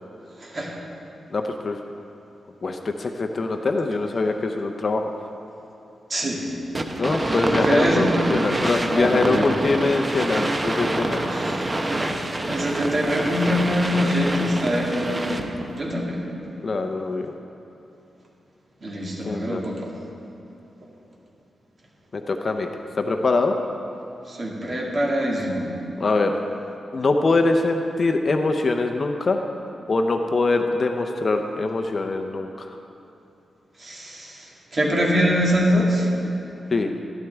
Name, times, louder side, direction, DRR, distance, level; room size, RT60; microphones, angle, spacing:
voice 1, 0.4-0.8 6.1-6.6 7.5-8.1 8.9-9.5 11.2-16.2 18.8-19.9 24.3-25.7 33.8-36.1, equal, 40° right, -4 dB, 2.2 m, -24 dB
voice 2, 1.3-1.8 2.6-5.1 7.0-11.2 16.6-17.3 19.3-19.6 22.1-22.7 23.0-23.5 26.0-26.3 26.9-29.4 29.9-32.7 36.7-36.9, left 3 dB, 40° left, 5 dB, 0.6 m, -23 dB
sound 1, 6.7-15.6, right 1 dB, 20° right, 0.7 m, -26 dB
13.0 x 12.5 x 3.5 m, 2.9 s
wide cardioid pair, 135°, 0 cm